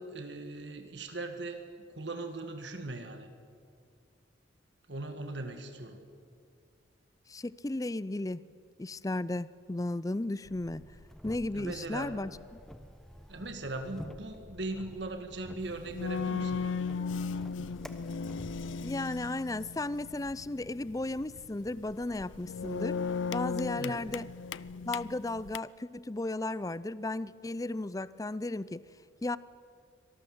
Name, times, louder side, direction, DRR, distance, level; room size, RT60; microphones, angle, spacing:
voice 1, 0.0-1.6 2.0-3.3 4.9-6.0 11.5-12.1 13.3-16.8 23.7-24.0, right 2 dB, 65° right, 6 dB, 1.9 m, -39 dB
voice 2, 7.3-8.4 8.8-10.8 11.2-12.3 18.8-23.0 23.3-24.3 24.9-28.8 29.2-29.4, left 2 dB, 20° left, 18 dB, 0.5 m, -34 dB
sound 1, 10.4-18.9, equal, 5° left, 1.1 m, -49 dB
sound 2, 15.6-25.6, left 5 dB, 80° left, 0.5 m, -36 dB
25.0 x 19.0 x 7.9 m, 2.2 s
head